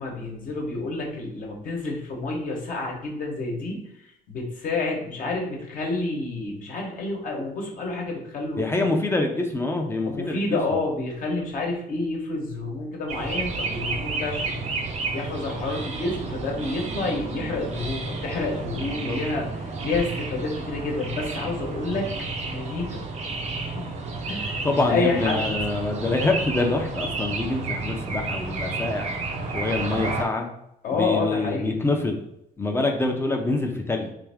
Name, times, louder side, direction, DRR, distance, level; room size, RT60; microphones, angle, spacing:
voice 1, 0.0-8.6 10.1-14.7 15.1-22.1 22.4-23.0 23.6-23.9 24.3-25.4 30.8-31.8, left 3 dB, 55° left, 0 dB, 1.1 m, -29 dB
voice 2, 8.6-10.6 18.7-19.2 24.6-29.1 29.5-30.5 30.9-32.3 32.6-34.1, left 2 dB, 15° left, 2 dB, 0.6 m, -26 dB
sound 1, 13.1-30.2, right 3 dB, 40° right, 0.6 m, -31 dB
3.5 x 2.6 x 3.4 m, 0.81 s
cardioid pair, 110°, 17 cm